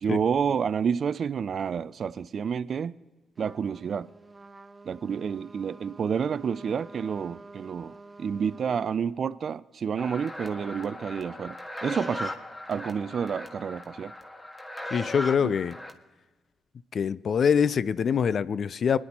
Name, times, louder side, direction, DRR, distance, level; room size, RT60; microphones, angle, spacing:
voice 1, 0.0-2.9 3.4-4.1 4.9-11.6 11.8-12.3 12.7-14.1 15.4-15.5, right 7 dB, 60° right, 0.3 m, -29 dB
Trumpet, 3.4-9.0, right 3 dB, 25° right, 1.3 m, -49 dB
sound 1, 10.0-15.9, left 1 dB, 20° left, 1.6 m, -38 dB
voice 2, 14.9-15.8 16.9-19.0, left 7 dB, 60° left, 0.4 m, -24 dB
21.5 x 11.0 x 2.9 m
supercardioid pair, 50°, 0 cm